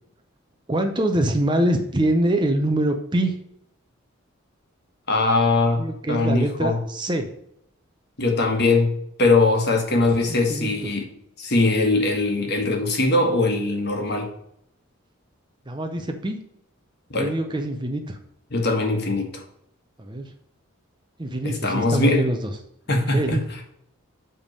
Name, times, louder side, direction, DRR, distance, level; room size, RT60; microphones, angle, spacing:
voice 1, 0.7-3.3 5.8-7.3 10.3-10.7 15.7-16.4 17.2-18.2 20.0-20.3 21.2-22.5 23.1-23.4, right 1 dB, 20° right, 5 dB, 0.7 m, -24 dB
voice 2, 5.1-5.8 6.1-6.8 8.2-8.9 9.2-11.0 11.4-14.3 17.1-17.3 18.5-19.4 21.4-22.2 22.9-23.4, left 2 dB, 50° left, 3 dB, 1.5 m, -21 dB
7.7 x 3.6 x 6.6 m, 0.73 s
head